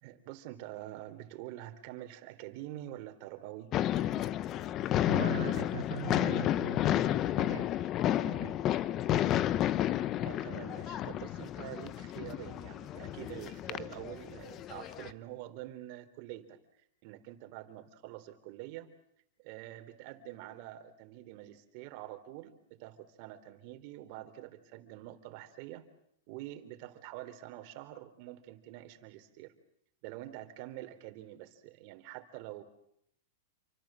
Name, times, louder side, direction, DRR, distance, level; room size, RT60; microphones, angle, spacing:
voice 1, 0.0-3.7 10.2-16.6 17.0-18.9 19.4-25.9 26.3-29.5 30.0-32.6, right 14 dB, 45° right, 8 dB, 3.4 m, -46 dB
sound 1, 3.7-15.1, left 12 dB, 30° left, 1.0 m, -31 dB
voice 2, 5.1-7.7 8.1-8.6, right 8 dB, 80° right, 7 dB, 1.3 m, -41 dB
28.5 x 25.0 x 7.6 m, 0.73 s
hypercardioid pair, 140°, 0 cm